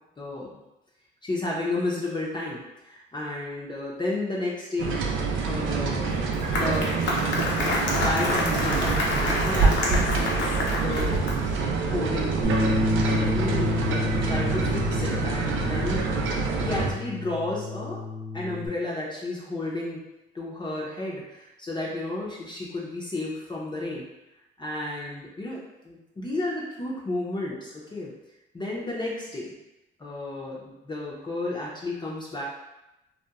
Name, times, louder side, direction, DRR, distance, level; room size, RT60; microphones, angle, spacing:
voice 1, 0.2-0.6 1.2-5.0 5.5-6.1 6.5-6.9 7.3-11.4 11.8-16.1 16.6-18.0 18.3-20.1 20.3-24.1 24.6-28.1 28.5-29.5 30.0-32.4, left 2 dB, 25° left, -5 dB, 0.5 m, -32 dB
sound 1, 4.8-16.9, right 4 dB, 80° right, 0.4 m, -26 dB
Applause, 6.1-11.6, left 2 dB, 65° left, 0.6 m, -28 dB
Bass guitar, 12.4-18.7, left 2 dB, 40° right, 0.6 m, -29 dB
2.8 x 2.2 x 2.3 m, 0.93 s
cardioid pair, 90°, 20 cm